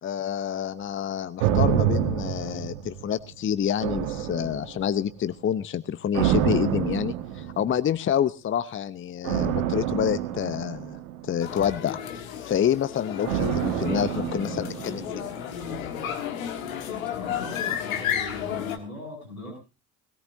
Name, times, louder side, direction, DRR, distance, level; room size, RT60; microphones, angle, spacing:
voice 1, 0.0-11.0 11.2-15.1, left 9 dB, 30° left, 15 dB, 0.8 m, -28 dB
sound 1, 1.4-3.3 3.8-5.1 6.1-7.9 9.2-11.6 13.2-15.4 15.7-15.8, right 10 dB, 65° right, 1.5 m, -27 dB
sound 2, 11.4-18.8, left 9 dB, 70° left, 1.7 m, -32 dB
voice 2, 17.0-19.6, left 1 dB, 90° left, -3 dB, 6.7 m, -40 dB
20.0 x 18.0 x 2.7 m, 0.30 s
figure-of-eight pair, 50°, 42 cm